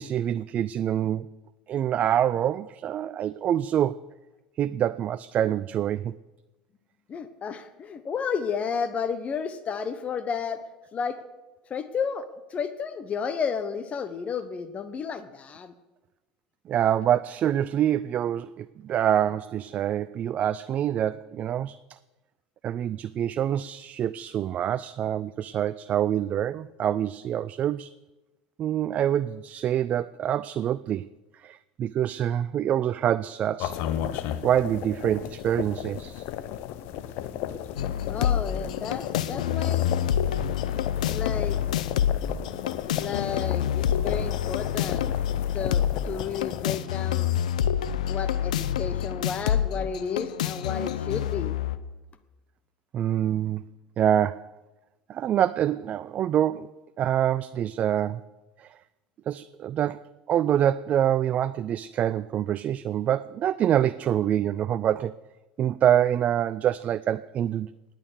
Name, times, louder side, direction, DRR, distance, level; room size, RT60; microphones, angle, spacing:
voice 1, 0.0-1.3 1.7-4.0 4.6-6.1 16.7-21.8 22.6-27.9 28.6-31.1 31.4-33.8 34.4-36.2 52.9-53.6 54.0-54.6 55.1-58.3 58.6-58.7 59.3-65.2 65.6-67.7, right 10 dB, 40° right, 16 dB, 0.4 m, -26 dB
voice 2, 7.1-10.6 10.9-11.2 11.7-15.7 38.1-39.8 41.1-41.6 42.9-47.3 48.1-51.5, left 6 dB, 35° left, 11 dB, 1.1 m, -32 dB
sound 1, 33.6-46.8, left 11 dB, 60° left, 0.9 m, -34 dB
sound 2, 37.8-51.8, left 10 dB, 80° left, 0.7 m, -27 dB
18.5 x 9.1 x 6.6 m, 1.1 s
hypercardioid pair, 80°, 4 cm